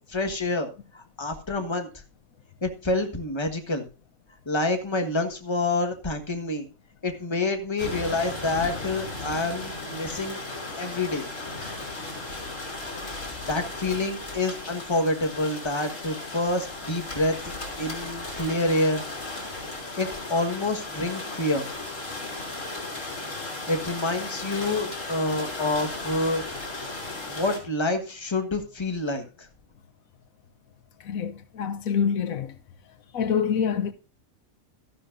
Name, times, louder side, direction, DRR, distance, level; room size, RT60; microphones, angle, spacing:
voice 1, 0.1-0.7 0.9-1.9 2.6-3.8 4.4-6.7 7.0-10.4 10.8-11.3 13.5-19.0 20.0-21.7 23.7-26.4 26.8-27.0 27.3-29.5, left 2 dB, 20° left, 1.5 m, -27 dB
sound 1, 7.8-27.6, left 2 dB, 65° left, 3.9 m, -36 dB
voice 2, 31.0-32.5 33.1-33.9, left 7 dB, 85° left, 1.3 m, -26 dB
13.0 x 12.0 x 2.6 m
omnidirectional pair, 1.4 m